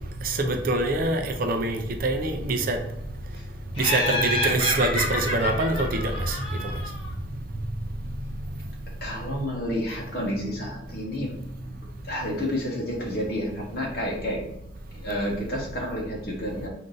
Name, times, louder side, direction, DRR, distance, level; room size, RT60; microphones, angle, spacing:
voice 1, 0.2-2.8 3.8-6.4, right 2 dB, 50° right, 5 dB, 0.5 m, -25 dB
Laughter, 3.8-7.1, left 1 dB, 30° left, 1.4 m, -28 dB
voice 2, 9.0-11.7 12.1-14.5 14.9-16.7, equal, 55° left, -1 dB, 1.1 m, -30 dB
3.8 x 2.7 x 3.8 m, 0.82 s
head